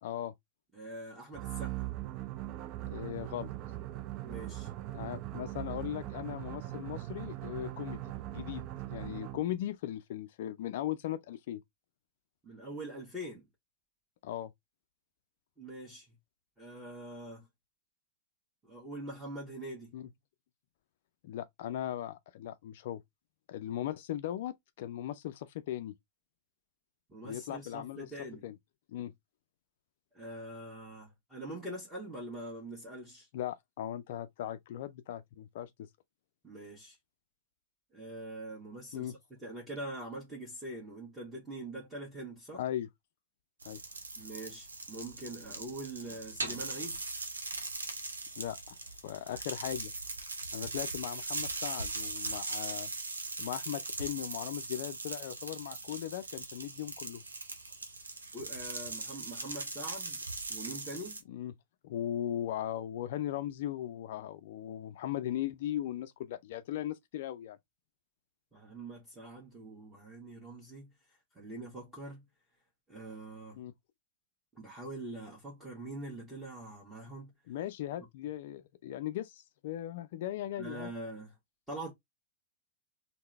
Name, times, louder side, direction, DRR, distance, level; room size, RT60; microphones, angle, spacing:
voice 1, 0.0-0.3 2.9-3.5 4.9-11.6 14.2-14.5 19.9-20.1 21.2-23.0 23.5-25.9 27.2-28.1 28.4-28.6 28.9-29.1 33.3-35.9 38.9-39.1 42.5-42.9 43.6-43.8 48.4-48.8 49.0-49.9 50.5-52.9 53.4-57.2 61.3-61.5 61.8-67.6 73.6-73.7 77.5-80.9, left 12 dB, 55° left, 0.3 m, -38 dB
voice 2, 0.7-1.8 4.2-4.7 12.4-13.4 15.6-16.1 16.6-17.5 18.6-19.9 27.1-28.5 30.1-33.3 36.4-37.0 37.9-42.6 44.2-47.0 58.3-60.2 60.5-61.2 68.5-72.2 72.9-73.6 74.5-77.3 80.6-81.4 81.7-81.9, right 1 dB, 10° right, 1.2 m, -44 dB
sound 1, 1.3-9.6, right 15 dB, 40° right, 0.4 m, -40 dB
sound 2, 43.6-61.2, right 3 dB, 80° right, 0.8 m, -40 dB
3.6 x 2.0 x 3.1 m
figure-of-eight pair, 95°, 0 cm